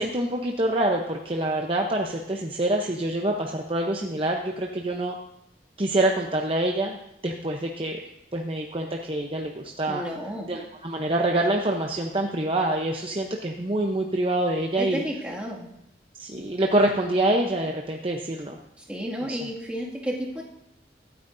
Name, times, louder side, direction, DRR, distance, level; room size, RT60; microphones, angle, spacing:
voice 1, 0.0-5.2 5.8-7.0 7.2-8.0 8.3-10.0 10.5-15.0 16.2-18.6 19.3-19.4, right 1 dB, 30° right, 1 dB, 0.8 m, -26 dB
voice 2, 9.9-10.5 14.8-15.7 18.9-20.4, equal, 5° right, -4 dB, 2.2 m, -32 dB
24.0 x 9.3 x 2.7 m, 0.82 s
head